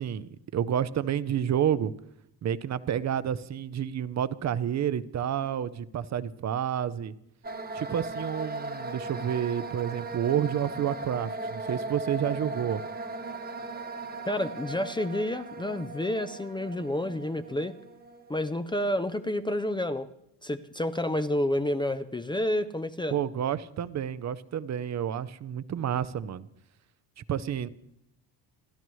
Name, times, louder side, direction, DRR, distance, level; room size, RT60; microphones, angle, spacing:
voice 1, 0.0-1.9 2.4-7.1 7.7-12.8 23.1-26.5 27.2-27.7, right 9 dB, 40° right, 16 dB, 0.7 m, -30 dB
sound 1, 7.4-19.3, right 2 dB, 20° right, 1.2 m, -38 dB
voice 2, 14.3-17.8 18.3-20.1 20.4-23.1, left 1 dB, 10° left, 10 dB, 0.5 m, -29 dB
29.0 x 12.0 x 3.1 m, 0.82 s
cardioid pair, 130°, 43 cm